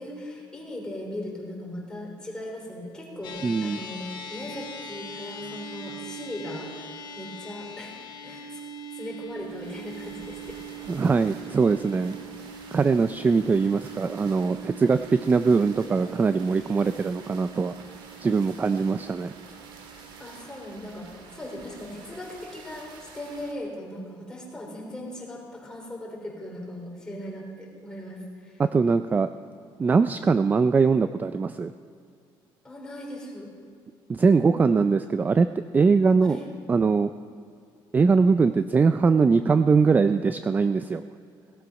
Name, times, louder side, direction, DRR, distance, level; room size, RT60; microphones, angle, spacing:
voice 1, 0.0-7.9 8.2-8.6 8.9-10.6 20.2-28.6 32.6-33.5 36.2-36.5, left 1 dB, 10° left, -2 dB, 3.4 m, -38 dB
sound 1, 3.2-21.8, right 2 dB, 55° left, 1.7 m, -42 dB
voice 2, 3.4-3.8 10.9-12.2 12.7-17.7 18.2-19.3 28.6-29.3 29.8-31.7 34.1-35.5 35.7-36.4 36.7-37.1 37.9-41.0, right 4 dB, 20° right, 11 dB, 0.3 m, -21 dB
sound 2, 9.2-23.5, right 4 dB, 65° right, 2.1 m, -48 dB
17.5 x 12.5 x 5.2 m, 2.4 s
cardioid pair, 140°, 9 cm